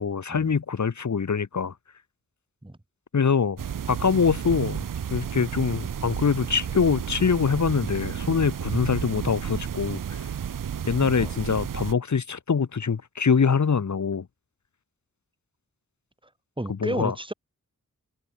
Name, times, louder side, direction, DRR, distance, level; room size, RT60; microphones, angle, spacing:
voice 1, 0.0-1.7 3.1-3.6 3.9-4.8 5.1-10.3 10.9-14.3 16.7-17.1, left 6 dB, 60° left, 1.3 m, -24 dB
sound 1, 3.6-11.9, right 8 dB, 80° right, 0.8 m, -32 dB
voice 2, 16.6-17.3, right 1 dB, 15° right, 4.4 m, -32 dB
wide cardioid pair, 65°, 32 cm